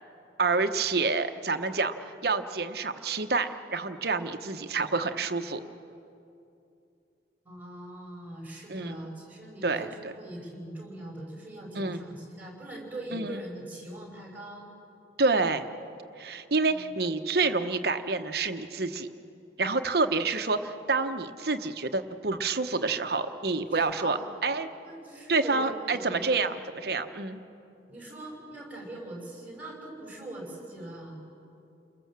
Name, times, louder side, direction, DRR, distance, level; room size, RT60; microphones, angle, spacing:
voice 1, 0.4-1.9 2.2-5.6 8.7-9.0 9.6-10.1 11.7-12.0 13.1-13.4 15.2-15.7 16.2-19.1 19.6-24.7 25.3-27.4, right 3 dB, 55° right, 8 dB, 1.0 m, -28 dB
voice 2, 7.4-14.7 16.6-16.9 23.7-24.4 24.9-26.3 27.9-31.2, right 1 dB, 10° right, -1 dB, 5.7 m, -41 dB
29.5 x 21.0 x 7.5 m, 2.7 s
head